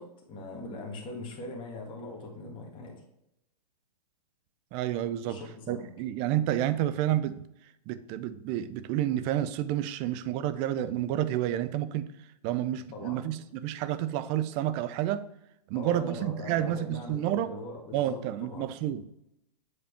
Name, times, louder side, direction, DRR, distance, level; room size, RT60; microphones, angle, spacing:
voice 1, 0.0-3.0 5.2-5.8 12.9-13.2 15.7-18.7, left 2 dB, 25° left, -1 dB, 1.8 m, -41 dB
voice 2, 4.7-5.4 5.7-7.4 7.9-12.1 12.4-15.3 15.7-17.5 17.9-19.0, right 12 dB, 25° right, 14 dB, 0.4 m, -30 dB
7.8 x 4.3 x 3.3 m, 0.81 s
hypercardioid pair, 135°, 21 cm